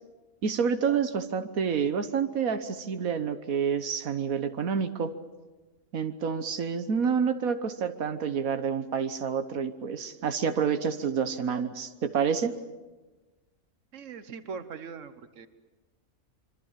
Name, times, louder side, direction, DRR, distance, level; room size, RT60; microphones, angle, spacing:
voice 1, 0.4-5.1 5.9-12.5, right 6 dB, 85° right, 9 dB, 1.6 m, -28 dB
voice 2, 13.9-15.5, right 5 dB, 65° right, 11 dB, 1.6 m, -41 dB
25.5 x 24.5 x 7.4 m, 1.2 s
omnidirectional pair, 1.4 m